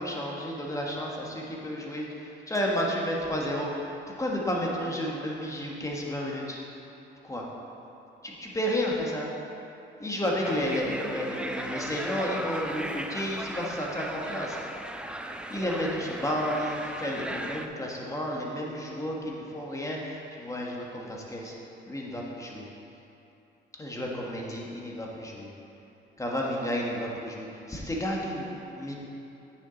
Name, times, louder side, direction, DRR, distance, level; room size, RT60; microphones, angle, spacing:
voice 1, 0.0-3.9 4.2-6.6 7.2-7.4 8.2-9.3 10.0-14.6 15.5-21.5 21.9-22.7 23.8-25.5 26.2-28.9, equal, 15° left, -2 dB, 1.5 m, -32 dB
sound 1, 10.4-17.7, right 1 dB, 5° right, 0.4 m, -37 dB
8.9 x 7.0 x 4.0 m, 2.9 s
cardioid pair, 90°, 20 cm